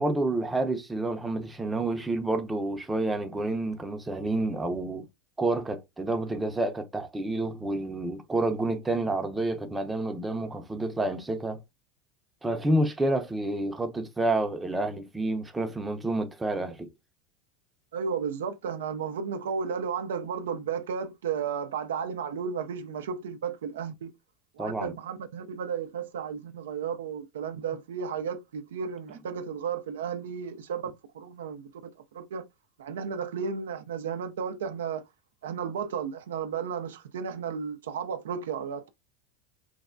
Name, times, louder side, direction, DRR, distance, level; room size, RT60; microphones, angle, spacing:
voice 1, 0.0-5.1 5.4-11.6 12.4-16.9 24.6-24.9, right 2 dB, 10° right, 0.5 m, -29 dB
voice 2, 17.9-24.1 24.6-31.7 32.1-32.4 32.8-35.0 35.4-38.9, right 6 dB, 85° right, 0.3 m, -33 dB
3.2 x 2.1 x 2.4 m
hypercardioid pair, 100°, 0 cm